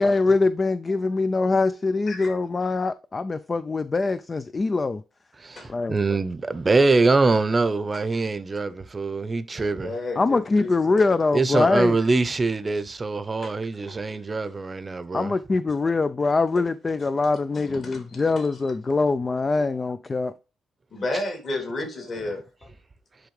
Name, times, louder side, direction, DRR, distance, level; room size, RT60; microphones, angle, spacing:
voice 1, 0.0-5.0 5.7-6.0 10.2-12.0 15.1-20.3, left 3 dB, 30° left, 0.4 m, -23 dB
voice 2, 5.4-9.9 11.3-15.3, right 3 dB, 25° right, 0.7 m, -23 dB
voice 3, 9.6-11.1 13.4-13.6 13.8-14.1 17.5-18.5 20.9-22.4, left 2 dB, 45° left, 2.7 m, -33 dB
10.5 x 3.5 x 3.2 m
cardioid pair, 90°, 0 cm